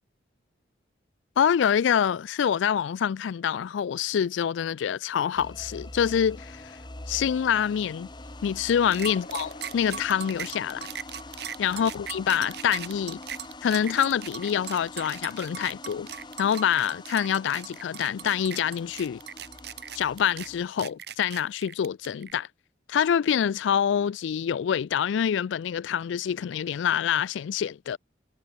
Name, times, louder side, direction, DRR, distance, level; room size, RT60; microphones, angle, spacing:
voice 1, 1.4-6.8 7.1-8.1 8.4-10.9 11.6-13.2 13.6-16.1 16.4-19.2 19.9-22.5 22.9-28.0, left 8 dB, 75° left, 0.3 m, -26 dB
sound 1, 5.4-20.7, left 2 dB, 25° left, 1.4 m, -44 dB
sound 2, 8.1-16.4, left 2 dB, 40° left, 3.9 m, -54 dB
sound 3, 8.9-22.3, right 8 dB, 55° right, 2.8 m, -39 dB
head